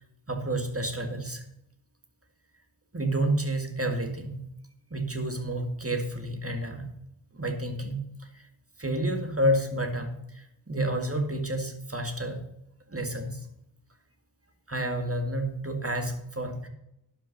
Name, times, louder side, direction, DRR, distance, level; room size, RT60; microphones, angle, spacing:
voice 1, 0.3-1.4 2.9-4.4 4.9-6.9 7.3-8.5 8.8-12.5 12.9-13.5 14.7-16.7, right 1 dB, 30° right, 5 dB, 1.9 m, -30 dB
11.5 x 5.5 x 6.6 m, 0.80 s
wide cardioid pair, 45°, 48 cm